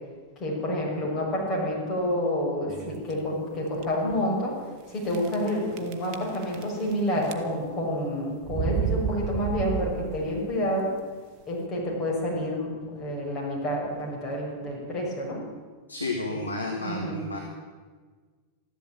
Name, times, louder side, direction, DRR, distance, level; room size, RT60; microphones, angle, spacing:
voice 1, 0.4-4.5 4.9-10.9 11.5-15.4 16.3-16.4 16.8-17.2, equal, 30° left, -2 dB, 6.1 m, -29 dB
sound 1, 2.7-3.1 3.7-3.8 4.1-4.2 5.1-5.5 5.8-6.9 7.2-7.8 8.4-10.4, right 7 dB, 40° right, 1.2 m, -31 dB
voice 2, 15.9-17.4, left 2 dB, 80° left, 1 dB, 1.8 m, -31 dB
14.0 x 12.0 x 8.8 m, 1.5 s
figure-of-eight pair, 90°, 0 cm